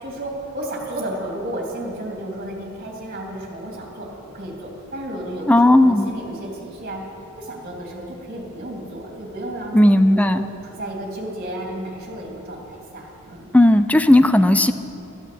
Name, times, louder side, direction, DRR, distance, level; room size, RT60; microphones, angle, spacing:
voice 1, 0.0-4.1 4.3-13.5, right 1 dB, 45° right, -1 dB, 3.1 m, -33 dB
voice 2, 5.5-6.1 9.7-10.5 13.5-14.7, left 1 dB, 5° left, 11 dB, 0.4 m, -14 dB
13.5 x 11.0 x 7.7 m, 2.8 s
head